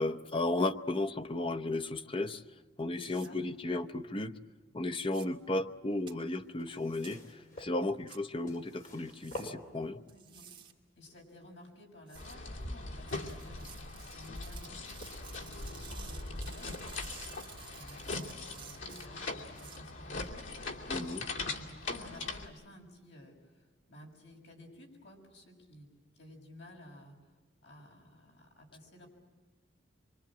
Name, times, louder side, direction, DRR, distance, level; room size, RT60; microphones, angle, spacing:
voice 1, 0.0-2.4 2.8-4.4 4.7-10.0 20.9-21.3, left 2 dB, 25° left, 9 dB, 0.9 m, -34 dB
voice 2, 3.0-3.4 9.9-10.5 11.0-16.8 17.6-20.5 21.6-25.9 26.1-27.3 27.6-29.1, left 1 dB, 65° left, 1 dB, 7.0 m, -54 dB
sound 1, 3.0-3.3 5.0-5.3 6.1-6.2 7.0-7.1 8.1-8.2 9.1-9.5 10.1-10.7 12.1-12.3 13.1-19.8, right 8 dB, 25° right, 2.4 m, -53 dB
sound 2, 5.9-10.2 11.0-11.1, left 1 dB, 45° left, 5.2 m, -48 dB
sound 3, 12.1-22.5, left 3 dB, 80° left, 2.7 m, -41 dB
25.0 x 24.5 x 8.9 m, 1.3 s
head